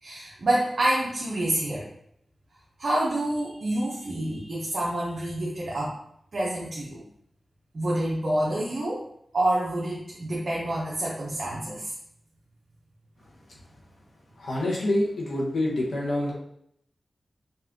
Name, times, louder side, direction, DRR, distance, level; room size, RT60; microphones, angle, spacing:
voice 1, 0.0-1.9 2.8-5.9 6.3-7.0 7.7-9.0 9.3-11.9, right 1 dB, 65° right, -6 dB, 0.9 m, -27 dB
voice 2, 14.4-16.3, left 1 dB, 85° left, -4 dB, 1.1 m, -26 dB
4.2 x 2.5 x 3.6 m, 0.72 s
cardioid pair, 60°, 0 cm